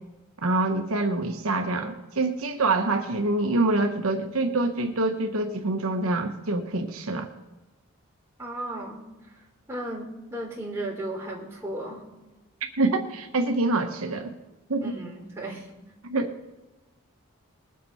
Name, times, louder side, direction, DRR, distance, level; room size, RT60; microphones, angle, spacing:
voice 1, 0.4-7.3 12.8-14.3 14.7-15.0 16.0-16.3, right 2 dB, 75° right, 5 dB, 1.1 m, -26 dB
voice 2, 8.4-9.0 9.7-12.0 14.8-15.7, right 1 dB, 10° right, -3 dB, 3.1 m, -35 dB
21.0 x 7.5 x 4.3 m, 1.1 s
head